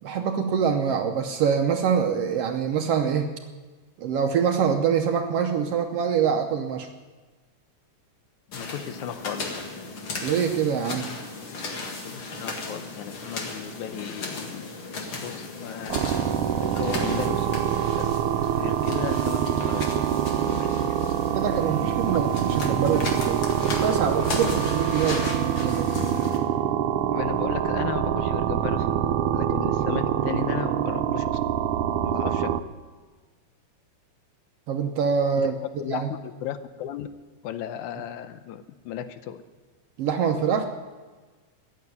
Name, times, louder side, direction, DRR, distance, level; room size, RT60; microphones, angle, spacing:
voice 1, 0.0-3.3 4.0-6.9 10.2-11.1 21.3-25.9 32.1-32.3 34.7-35.5 35.9-36.1 40.0-40.7, right 7 dB, 65° right, 5 dB, 1.6 m, -25 dB
voice 2, 8.5-9.6 11.9-14.7 15.1-17.7 18.0-18.2 18.6-20.0 20.4-21.5 22.1-22.2 22.5-22.8 27.1-29.0 29.3-31.4 32.0-32.6 35.4-37.1 37.4-39.4, left 10 dB, 80° left, 11 dB, 2.1 m, -35 dB
sound 1, 8.5-26.4, left 3 dB, 50° left, 2.4 m, -36 dB
sound 2, 15.9-32.6, right 10 dB, 85° right, 2.2 m, -25 dB
14.0 x 9.7 x 9.4 m, 1.3 s
omnidirectional pair, 3.5 m